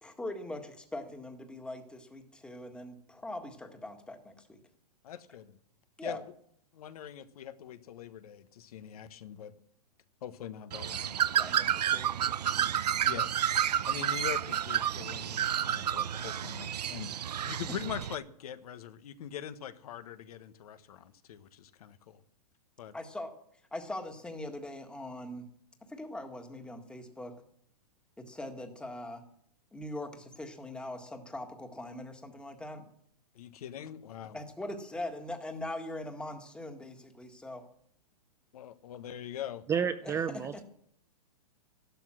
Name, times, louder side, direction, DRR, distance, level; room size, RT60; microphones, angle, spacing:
voice 1, 0.0-4.6 6.0-6.2 11.4-12.1 22.9-23.4 23.7-25.5 25.9-27.3 28.2-29.2 29.7-32.9 34.3-37.7 40.0-40.6, left 1 dB, 5° left, 1.7 m, -41 dB
voice 2, 5.0-5.6 6.0-6.2 6.7-9.5 10.2-11.1 13.0-13.3 13.9-22.2 22.8-22.9 33.3-34.4 38.5-39.7, left 9 dB, 65° left, 1.3 m, -43 dB
Bird, 10.7-18.2, right 10 dB, 85° right, 0.7 m, -30 dB
voice 3, 39.7-40.6, right 7 dB, 15° right, 0.6 m, -30 dB
14.0 x 12.0 x 6.3 m
hypercardioid pair, 140°, 20 cm